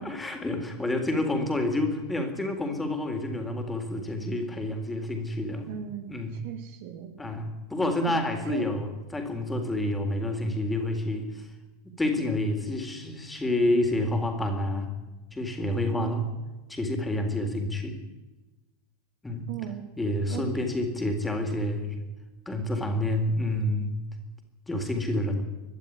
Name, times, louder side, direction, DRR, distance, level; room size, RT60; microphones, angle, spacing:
voice 1, 0.0-5.8 6.1-6.4 7.2-11.5 12.0-14.9 15.3-16.3 16.7-18.0 19.2-19.5 20.0-22.0 22.5-24.0 24.7-25.4, left 1 dB, 10° left, 4 dB, 3.9 m, -28 dB
voice 2, 5.7-6.1 6.4-7.1 8.5-8.7 16.0-16.2 19.5-19.8 20.3-20.5, right 9 dB, 50° right, 6 dB, 2.3 m, -37 dB
22.5 x 12.5 x 9.6 m, 1.1 s
figure-of-eight pair, 90°, 0 cm